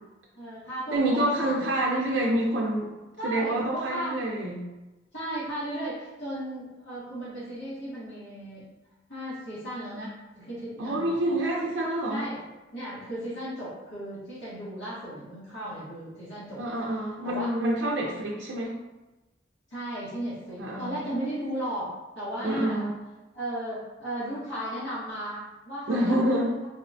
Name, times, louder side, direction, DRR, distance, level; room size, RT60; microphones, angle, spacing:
voice 1, 0.3-1.7 3.2-4.2 5.1-8.7 9.1-11.2 12.1-12.4 12.7-16.6 17.2-17.6 19.7-22.8 23.3-26.7, right 1 dB, 80° left, -11 dB, 1.2 m, -35 dB
voice 2, 0.9-2.9 3.2-4.7 10.8-12.3 16.6-18.8 20.6-21.0 22.4-22.9 25.9-26.5, right 1 dB, 80° right, -3 dB, 0.5 m, -27 dB
4.0 x 2.1 x 2.6 m, 1.1 s
head